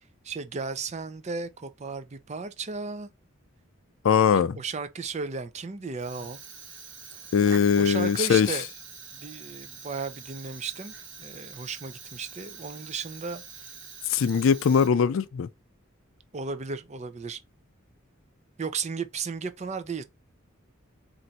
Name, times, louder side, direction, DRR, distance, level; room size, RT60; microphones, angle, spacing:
voice 1, 0.2-3.1 4.5-6.4 7.8-8.7 9.1-10.9 11.2-13.7 16.3-17.4 18.6-20.0, right 4 dB, 30° right, 0.4 m, -34 dB
voice 2, 4.0-4.6 7.3-8.5 14.1-15.5, left 7 dB, 70° left, 0.4 m, -21 dB
Fire, 5.9-15.3, right 5 dB, 60° right, 1.2 m, -45 dB
4.4 x 2.6 x 3.9 m
head